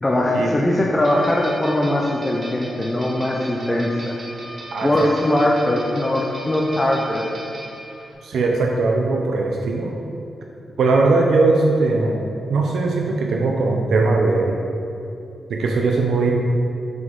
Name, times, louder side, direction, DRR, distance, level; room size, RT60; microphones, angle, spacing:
voice 1, 0.0-4.2 4.8-7.3, left 1 dB, 15° left, -2 dB, 0.4 m, -20 dB
sound 1, 1.0-8.1, right 1 dB, 30° right, 1.1 m, -38 dB
voice 2, 4.7-5.3 8.2-10.0 10.8-12.2 12.5-14.6 15.5-16.3, right 3 dB, 65° right, 1 dB, 0.5 m, -19 dB
5.9 x 4.8 x 3.7 m, 2.7 s
wide cardioid pair, 165°, 0 cm